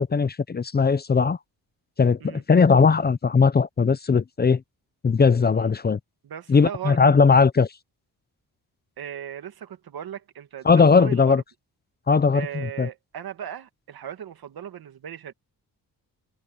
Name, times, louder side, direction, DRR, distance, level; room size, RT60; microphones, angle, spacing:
voice 1, 0.0-1.4 2.0-4.6 5.0-6.0 6.5-7.7 10.7-11.4 12.1-12.9, left 5 dB, 25° left, 0.6 m, -19 dB
voice 2, 6.2-7.2 9.0-11.4 12.3-15.3, right 9 dB, 75° right, 1.9 m, -37 dB
wide cardioid pair, 120°, 37 cm